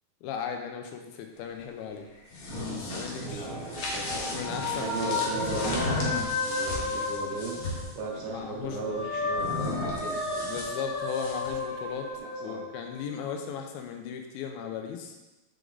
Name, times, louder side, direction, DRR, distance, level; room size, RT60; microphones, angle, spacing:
voice 1, 0.2-2.1 2.5-3.5 4.1-6.2 8.3-9.0 10.3-12.1 12.4-15.1, left 7 dB, 85° left, 4 dB, 2.6 m, -37 dB
sound 1, 2.2-7.9 9.3-11.6, left 2 dB, 60° left, 1.6 m, -35 dB
Thunder, 2.5-9.5, right 2 dB, 55° right, 1.5 m, -42 dB
voice 2, 3.2-4.4 4.7-6.1 6.4-10.2 12.2-12.7, right 4 dB, 70° right, -1 dB, 2.1 m, -37 dB
sound 2, 3.3-8.2 8.6-13.4, left 3 dB, 5° right, 1.5 m, -34 dB
8.1 x 4.8 x 4.0 m, 1.1 s
omnidirectional pair, 4.2 m